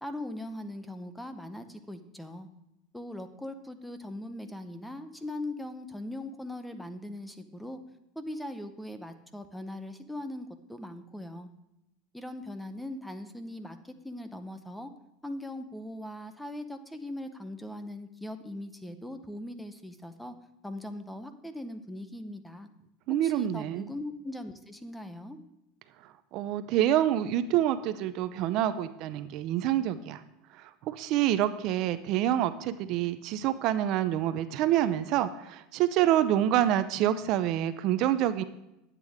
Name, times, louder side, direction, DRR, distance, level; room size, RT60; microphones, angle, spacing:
voice 1, 0.0-2.5 2.9-7.8 8.2-11.5 12.1-14.9 15.2-20.3 20.6-22.7 23.1-25.4, left 1 dB, 5° left, 9 dB, 0.7 m, -40 dB
voice 2, 23.1-23.9 26.3-30.2 30.5-38.4, right 12 dB, 55° right, 12 dB, 0.5 m, -27 dB
10.5 x 8.2 x 3.5 m, 0.89 s
supercardioid pair, 125°, 0 cm